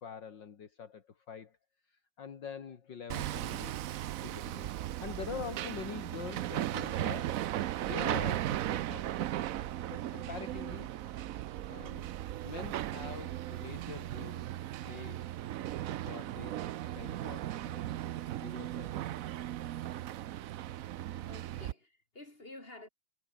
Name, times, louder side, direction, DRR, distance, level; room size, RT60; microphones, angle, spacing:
voice 1, 0.0-1.6 1.9-3.7 4.2-4.7 5.0-7.4 7.8-9.1 9.5-10.9 11.3-11.4 11.7-12.1 12.4-14.4 14.8-15.2 15.8-16.7 16.9-18.0 18.3-19.0, left 7 dB, 65° left, 2.5 m, -45 dB
Hammer, 3.1-21.7, right 13 dB, 80° right, 0.7 m, -37 dB
voice 2, 21.3-22.9, left 2 dB, 25° left, 5.8 m, -50 dB
omnidirectional pair, 2.2 m